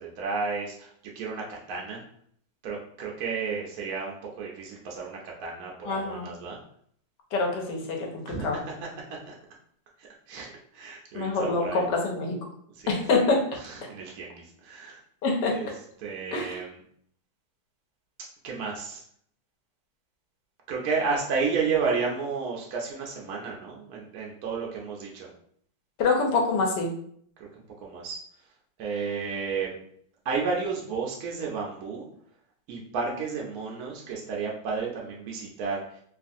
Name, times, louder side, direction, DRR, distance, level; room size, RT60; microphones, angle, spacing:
voice 1, 0.0-2.0 2.6-6.6 8.3-8.5 9.3-9.4 10.0-11.8 12.8-13.0 13.6-15.0 15.5-15.7 16.0-16.8 18.4-19.0 20.7-25.3 27.8-28.2 28.8-29.8 30.3-32.1 32.7-35.8, right 5 dB, 70° right, -2 dB, 0.8 m, -32 dB
voice 2, 5.8-6.3 7.3-8.6 11.1-12.3 12.9-13.4 15.2-15.5 16.3-16.6 26.0-26.9, left 3 dB, 70° left, 1 dB, 1.3 m, -25 dB
3.1 x 2.4 x 2.5 m, 0.64 s
omnidirectional pair, 2.0 m